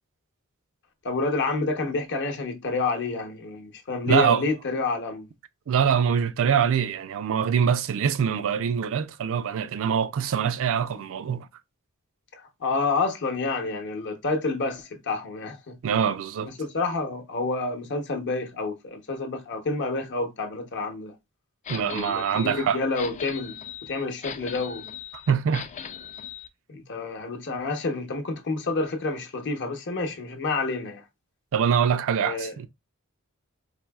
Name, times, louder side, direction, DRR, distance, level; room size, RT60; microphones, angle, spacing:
voice 1, 1.0-5.3 12.3-15.8 16.5-21.1 21.7-24.9 26.7-31.0 32.2-32.6, left 3 dB, 55° left, 0.8 m, -29 dB
voice 2, 4.1-4.4 5.7-11.5 15.8-16.5 21.7-22.8 25.3-25.7 31.5-32.7, right 7 dB, 60° right, 0.4 m, -24 dB
sound 1, 21.7-26.5, left 8 dB, 30° left, 0.3 m, -39 dB
4.2 x 2.6 x 2.2 m
head